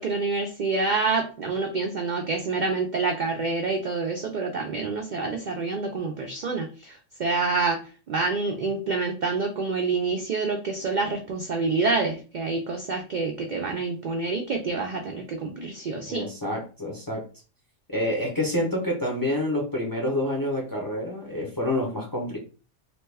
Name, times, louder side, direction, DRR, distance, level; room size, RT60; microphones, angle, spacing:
voice 1, 0.0-7.8 8.1-16.2, right 4 dB, 60° right, 2 dB, 0.4 m, -27 dB
voice 2, 16.1-17.2 17.9-22.4, left 1 dB, 25° left, -2 dB, 0.5 m, -28 dB
2.9 x 2.2 x 3.2 m, 0.35 s
omnidirectional pair, 1.3 m